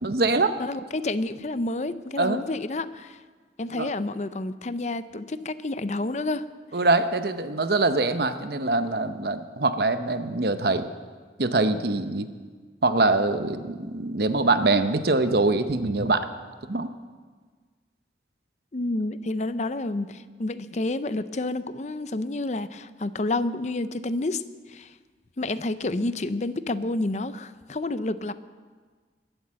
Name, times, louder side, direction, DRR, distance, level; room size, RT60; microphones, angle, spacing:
voice 1, 0.0-0.5 2.2-2.4 3.7-3.9 6.7-10.9 11.4-12.3 12.8-16.3 16.7-16.9, right 3 dB, 60° right, 10 dB, 0.9 m, -23 dB
voice 2, 0.6-3.2 3.6-6.5 18.7-24.4 24.7-25.0 25.4-28.3, left 2 dB, 40° left, 13 dB, 0.6 m, -29 dB
21.0 x 8.1 x 7.6 m, 1.5 s
head